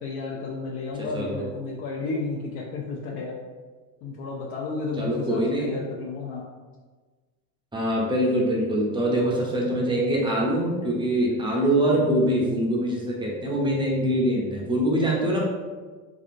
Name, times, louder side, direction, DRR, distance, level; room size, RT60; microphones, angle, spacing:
voice 1, 0.0-3.4 4.0-6.4, left 3 dB, 65° left, -3 dB, 0.6 m, -32 dB
voice 2, 1.0-1.5 5.0-5.7 7.7-15.4, right 1 dB, 10° right, -3 dB, 0.4 m, -24 dB
3.5 x 2.5 x 2.5 m, 1.4 s
supercardioid pair, 115°, 50 cm